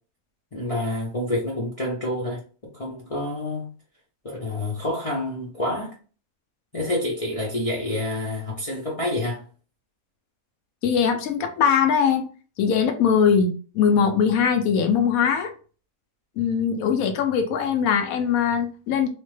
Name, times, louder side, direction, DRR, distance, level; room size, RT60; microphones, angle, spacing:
voice 1, 0.5-2.4 2.7-3.7 4.2-5.9 6.7-9.5, left 1 dB, 45° left, 0.4 m, -28 dB
voice 2, 10.8-12.2 12.6-15.5 16.4-19.1, left 7 dB, 85° left, 1.1 m, -21 dB
2.9 x 2.1 x 3.1 m
omnidirectional pair, 1.5 m